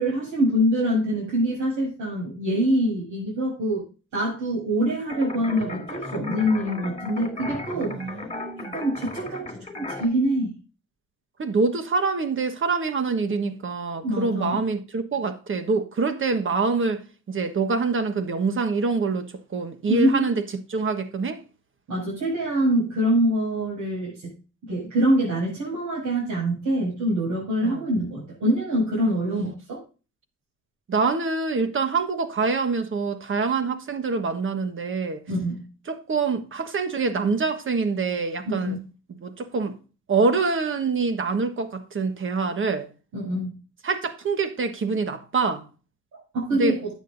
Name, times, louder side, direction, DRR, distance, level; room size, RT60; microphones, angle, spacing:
voice 1, 0.0-3.8 4.1-8.0 8.7-10.5 14.0-14.6 19.9-20.3 21.9-24.3 24.7-29.8 35.3-35.6 38.4-38.8 43.1-43.5 46.1-46.9, right 1 dB, 65° right, 6.5 m, -25 dB
sound 1, 5.1-10.1, left 3 dB, 15° left, 2.6 m, -36 dB
voice 2, 7.7-8.7 11.4-17.0 17.3-20.4 20.7-21.4 27.6-27.9 29.2-29.4 30.9-35.2 35.9-38.8 39.2-39.8 40.1-42.9 43.8-45.7 46.5-46.8, right 4 dB, 40° right, 1.3 m, -25 dB
13.0 x 8.5 x 2.6 m
cardioid pair, 90°, 30 cm